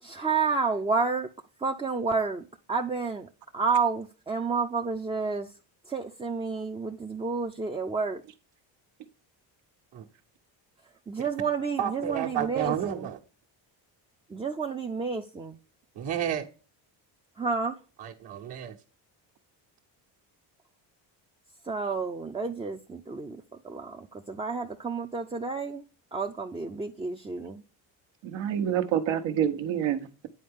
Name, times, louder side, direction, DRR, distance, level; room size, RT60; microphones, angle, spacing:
voice 1, 0.0-1.3 1.6-5.5 5.9-8.2 11.1-13.1 14.3-15.6 17.4-17.8 21.6-25.8 26.1-27.6, right 4 dB, 15° right, 0.4 m, -30 dB
voice 2, 11.8-13.2 15.9-16.4 18.0-18.8, right 9 dB, 60° right, 1.3 m, -31 dB
voice 3, 28.2-30.3, right 9 dB, 80° right, 1.1 m, -27 dB
9.4 x 4.4 x 3.6 m
cardioid pair, 110°, 45 cm